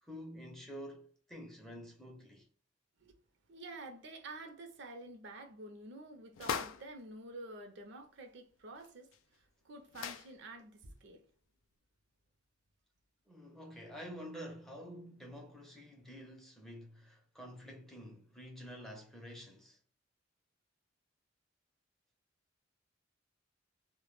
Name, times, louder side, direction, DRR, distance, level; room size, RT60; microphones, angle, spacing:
voice 1, 0.0-2.5 13.3-19.8, equal, ahead, 0.5 m, -49 dB
voice 2, 3.5-9.1 9.4-11.2, right 2 dB, 65° right, 0.5 m, -49 dB
sound 1, 6.3-6.9 8.8-8.9 9.1-9.2 9.9-10.3, left 7 dB, 80° left, 0.3 m, -39 dB
2.1 x 2.1 x 3.0 m
head